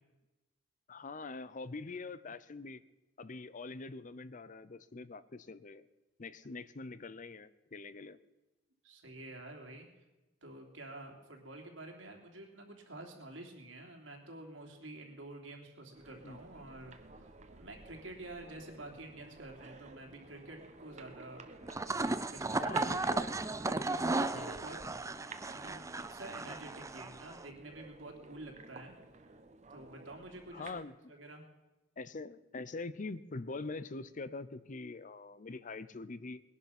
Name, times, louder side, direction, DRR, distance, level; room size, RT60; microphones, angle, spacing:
voice 1, 0.9-2.8 3.2-5.9 6.2-8.2 16.2-16.4 22.5-23.3 24.3-24.6 30.5-31.1 32.0-36.4, left 3 dB, 40° left, 15 dB, 0.6 m, -44 dB
voice 2, 8.8-9.9 10.4-21.5 22.0-23.1 23.6-24.8 25.5-28.9 29.7-30.7 31.1-31.4, right 2 dB, 80° right, 1 dB, 3.2 m, -49 dB
sound 1, 15.9-30.8, right 3 dB, 40° right, 1.1 m, -54 dB
sound 2, 21.6-27.4, right 2 dB, 15° right, 0.5 m, -35 dB
20.0 x 11.0 x 6.0 m, 1.1 s
head